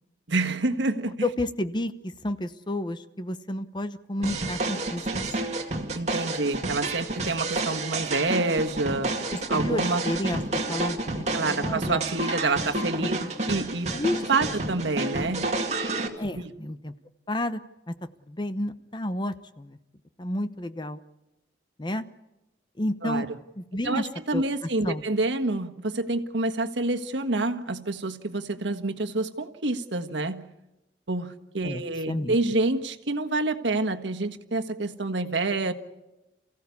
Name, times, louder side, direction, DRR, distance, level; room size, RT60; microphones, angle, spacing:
voice 1, 0.3-1.2 5.9-9.1 9.5-10.0 11.3-13.2 13.5-13.9 14.3-15.6 16.3-16.5 23.0-23.3 23.8-30.5 31.1-35.7, right 2 dB, 85° right, 5 dB, 1.5 m, -27 dB
voice 2, 1.2-5.1 9.3-12.0 13.0-13.3 13.9-14.2 16.2-16.9 17.3-17.6 17.9-18.0 18.3-19.8 20.2-21.0 21.8-22.1 22.8-23.3 23.6-24.1 24.3-24.4 24.8-25.0 31.6-31.8 32.1-32.4, left 1 dB, 25° left, 11 dB, 0.9 m, -31 dB
sound 1, 4.2-16.1, right 2 dB, 40° right, 2.2 m, -30 dB
29.0 x 16.0 x 8.4 m, 1.0 s
head